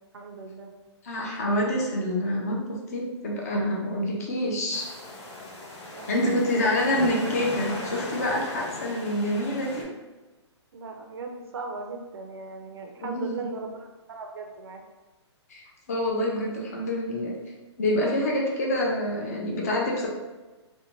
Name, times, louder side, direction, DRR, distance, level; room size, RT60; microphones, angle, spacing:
voice 1, 0.1-0.7 5.9-7.2 10.7-14.8, right 3 dB, 55° right, 3 dB, 0.4 m, -38 dB
voice 2, 1.0-4.9 6.1-9.9 13.0-13.5 15.5-17.4 17.8-20.1, left 1 dB, 35° left, -2 dB, 0.4 m, -27 dB
sound 1, 4.7-9.8, left 2 dB, 85° left, 1.1 m, -37 dB
2.6 x 2.1 x 2.9 m, 1.2 s
hypercardioid pair, 170°, 15 cm